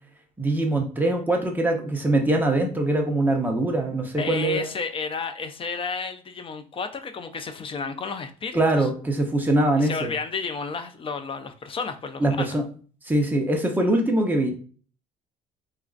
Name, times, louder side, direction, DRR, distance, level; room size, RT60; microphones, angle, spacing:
voice 1, 0.4-4.7 8.5-10.1 12.2-12.6 13.0-14.5, right 1 dB, 10° right, 0.8 m, -23 dB
voice 2, 4.2-8.9 9.8-12.6, left 5 dB, 30° left, 0.4 m, -32 dB
4.1 x 2.4 x 2.4 m
cardioid pair, 110°, 17 cm